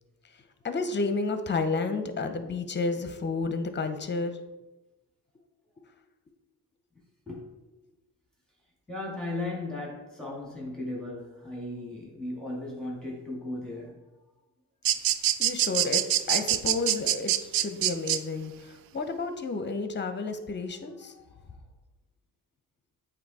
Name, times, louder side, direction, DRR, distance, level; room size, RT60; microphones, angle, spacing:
voice 1, 0.6-4.4 15.4-21.1, left 3 dB, 25° left, 9 dB, 0.8 m, -31 dB
voice 2, 2.1-2.6 7.3-7.4 8.9-14.0 21.0-21.5, left 2 dB, ahead, -3 dB, 1.9 m, -37 dB
sound 1, 14.8-18.2, right 12 dB, 55° right, 0.5 m, -24 dB
8.0 x 2.8 x 4.1 m, 1.1 s
supercardioid pair, 60°, 43 cm